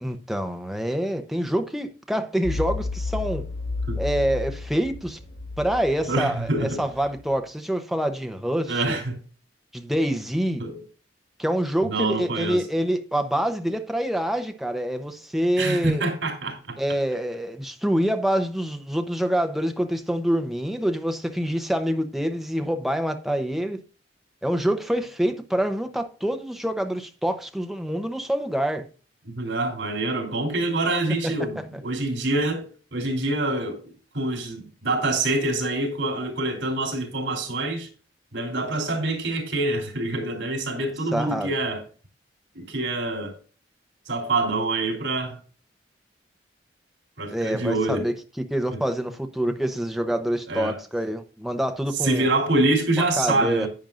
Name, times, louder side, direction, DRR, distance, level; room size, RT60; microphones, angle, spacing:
voice 1, 0.0-3.4 4.0-5.2 5.6-9.0 9.7-10.6 11.4-16.0 16.8-23.8 24.4-28.9 31.2-31.6 41.1-41.5 47.3-48.1 48.5-52.3 53.0-53.7, equal, ahead, 0.8 m, -26 dB
sound 1, 2.4-7.2, left 3 dB, 70° left, 3.0 m, -32 dB
voice 2, 6.1-6.8 8.7-9.2 10.6-10.8 11.8-12.6 15.6-16.8 29.2-33.8 34.1-37.9 38.3-41.8 42.5-43.4 44.1-45.4 47.2-48.1 50.5-50.8 52.0-53.7, right 2 dB, 80° right, 3.4 m, -26 dB
10.5 x 9.0 x 2.5 m
head